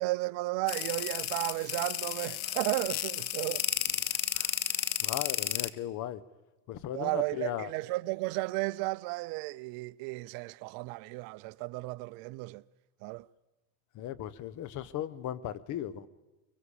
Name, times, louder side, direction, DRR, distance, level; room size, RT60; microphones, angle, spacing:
voice 1, 0.0-3.7 6.9-12.6 13.0-13.3, right 22 dB, 60° right, 0.6 m, -34 dB
sound 1, 0.7-5.7, left 14 dB, 90° left, 1.0 m, -33 dB
voice 2, 4.3-6.2 6.7-7.7 13.9-16.1, left 11 dB, 45° left, 1.1 m, -37 dB
24.5 x 23.0 x 5.0 m
supercardioid pair, 115°, 40 cm